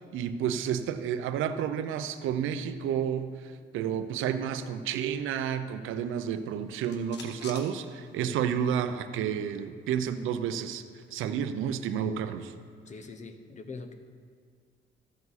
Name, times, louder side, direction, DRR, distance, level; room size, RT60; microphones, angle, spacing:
voice 1, 0.1-10.8 11.1-12.5, right 8 dB, 90° right, 10 dB, 0.6 m, -31 dB
sound 1, 6.1-8.6 8.9-9.0 9.3-11.2, left 4 dB, 60° left, 1.4 m, -51 dB
voice 2, 12.9-13.9, left 3 dB, 35° left, 8 dB, 0.9 m, -43 dB
14.0 x 7.0 x 4.1 m, 2.1 s
cardioid pair, 90°, 20 cm